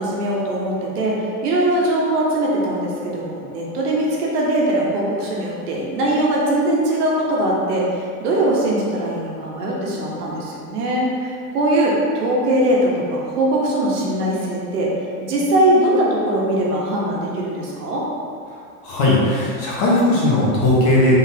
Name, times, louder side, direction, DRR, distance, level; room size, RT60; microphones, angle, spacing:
voice 1, 0.0-7.9 8.2-14.9 15.2-18.0, right 1 dB, 90° right, -4 dB, 1.2 m, -21 dB
voice 2, 18.8-21.2, left 1 dB, 50° left, -7 dB, 1.4 m, -17 dB
4.0 x 3.9 x 2.9 m, 2.4 s
supercardioid pair, 150°, 45 cm